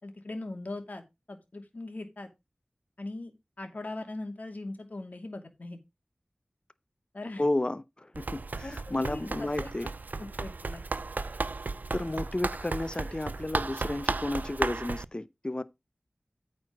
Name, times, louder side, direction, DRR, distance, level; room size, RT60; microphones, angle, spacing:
voice 1, 0.0-2.3 3.0-5.8 7.1-7.4 8.6-9.7 10.2-10.8, left 2 dB, 55° left, 2.6 m, -40 dB
voice 2, 7.4-9.9 11.9-15.6, left 1 dB, 30° left, 0.7 m, -32 dB
Run, 8.1-15.1, right 3 dB, 65° right, 0.5 m, -34 dB
8.8 x 4.6 x 6.1 m
wide cardioid pair, 60°, 3 cm